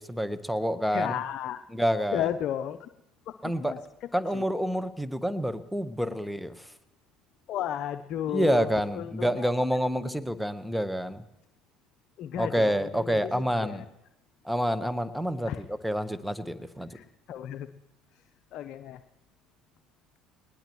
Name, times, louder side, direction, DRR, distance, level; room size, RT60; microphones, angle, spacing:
voice 1, 0.0-1.2 1.7-2.2 3.4-3.7 4.1-6.7 8.3-11.2 12.4-13.8 14.4-15.5 15.8-17.0, equal, 5° right, 12 dB, 1.2 m, -28 dB
voice 2, 0.9-1.6 2.1-2.9 3.3-4.5 7.5-9.5 10.1-10.2 12.2-13.8 15.5-15.6 16.9-17.7 18.1-18.2 18.5-19.0, left 10 dB, 55° left, 9 dB, 0.7 m, -34 dB
20.0 x 19.5 x 3.2 m, 0.88 s
hypercardioid pair, 65°, 0 cm